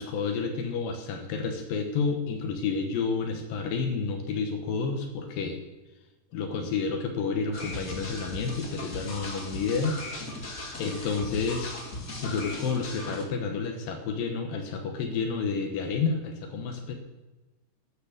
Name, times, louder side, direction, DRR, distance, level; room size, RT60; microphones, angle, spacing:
voice 1, 0.0-5.6 6.3-10.0 10.2-10.5 10.8-11.7 12.2-16.9, left 5 dB, 85° left, 4 dB, 2.8 m, -30 dB
sound 1, 7.5-13.2, left 2 dB, 35° left, 1.5 m, -38 dB
14.0 x 7.4 x 6.5 m, 1.2 s
omnidirectional pair, 3.9 m